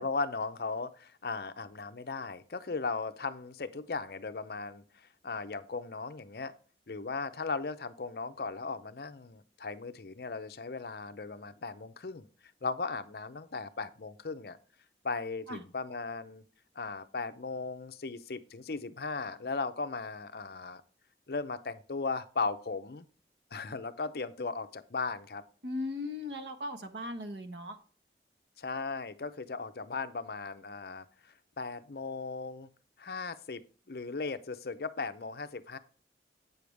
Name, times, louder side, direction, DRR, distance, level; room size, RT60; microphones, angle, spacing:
voice 1, 0.0-6.5 6.9-12.3 12.6-14.6 15.0-16.4 16.8-20.8 21.3-23.0 23.5-25.4 28.6-32.7 33.0-35.8, left 4 dB, 60° left, 11 dB, 0.6 m, -37 dB
voice 2, 25.6-27.8, left 2 dB, 85° right, 7 dB, 1.3 m, -38 dB
8.5 x 6.7 x 3.4 m, 0.40 s
head